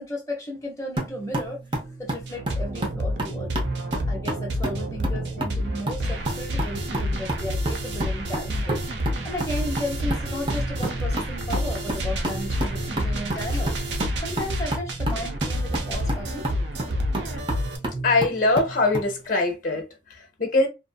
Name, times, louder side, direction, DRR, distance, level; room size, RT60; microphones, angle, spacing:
voice 1, 0.0-1.6 2.0-3.7 4.1-8.8 9.2-13.7 14.2-16.5, left 1 dB, 15° left, 0.9 m, -34 dB
sound 1, 1.0-19.1, right 2 dB, 25° right, 0.7 m, -31 dB
sound 2, 2.3-17.8, equal, 70° right, 0.6 m, -29 dB
voice 2, 18.0-20.7, left 2 dB, 45° left, 0.7 m, -23 dB
2.6 x 2.5 x 2.2 m
head